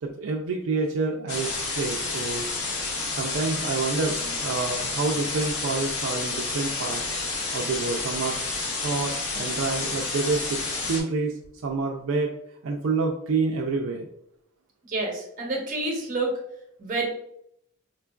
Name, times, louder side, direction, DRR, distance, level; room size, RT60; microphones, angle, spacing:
voice 1, 0.0-2.5 3.2-7.0 7.5-8.4 8.8-12.3 12.6-14.1, right 4 dB, 70° right, 1 dB, 0.4 m, -28 dB
sound 1, 1.3-11.0, left 3 dB, 85° left, 0.7 m, -30 dB
voice 2, 14.9-16.4 16.8-17.1, right 2 dB, 40° right, 0 dB, 0.8 m, -28 dB
4.3 x 2.3 x 2.3 m, 0.74 s
head